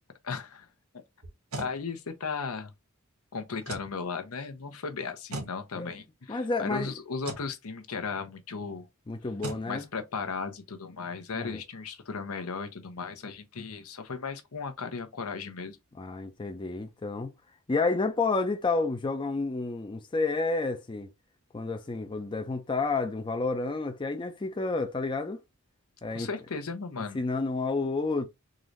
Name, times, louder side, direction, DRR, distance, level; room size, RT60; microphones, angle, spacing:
voice 1, 0.2-0.7 1.6-2.7 3.3-8.9 9.7-15.8 26.1-27.2, left 5 dB, 80° left, 0.8 m, -36 dB
sound 1, 1.2-1.8 3.6-3.9 5.3-5.6 7.2-7.5 9.4-9.7, right 2 dB, 85° right, 1.7 m, -37 dB
voice 2, 6.3-6.9 9.1-9.8 11.3-11.6 16.0-17.3 17.7-21.1 21.5-25.4 26.0-26.3 27.1-28.3, left 3 dB, 20° left, 0.4 m, -30 dB
3.8 x 2.6 x 3.1 m
head